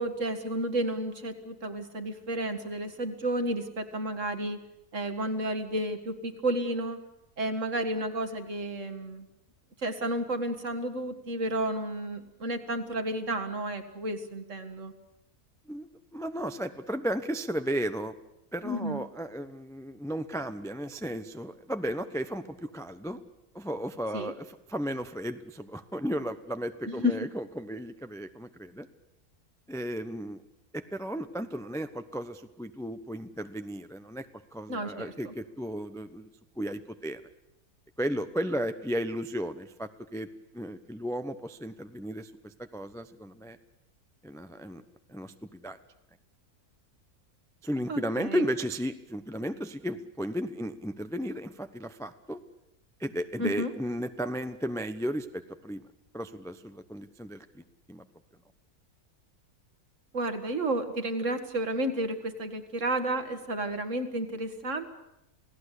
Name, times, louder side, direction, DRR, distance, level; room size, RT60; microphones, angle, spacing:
voice 1, 0.0-4.6 4.9-7.0 7.4-9.3 9.8-14.9 18.6-19.0 24.1-24.3 26.9-27.1 34.7-35.3 47.9-48.4 53.4-53.7 60.1-64.9, right 1 dB, 55° right, 7 dB, 2.1 m, -31 dB
voice 2, 15.7-18.1 18.5-23.2 23.5-28.9 29.7-30.4 30.7-34.3 34.5-36.3 36.6-37.2 38.0-40.3 40.5-43.6 44.2-44.8 45.1-45.8 47.6-52.4 53.0-55.8 56.1-58.0, equal, 5° left, 9 dB, 0.6 m, -34 dB
28.5 x 17.5 x 8.3 m, 0.89 s
omnidirectional pair, 1.6 m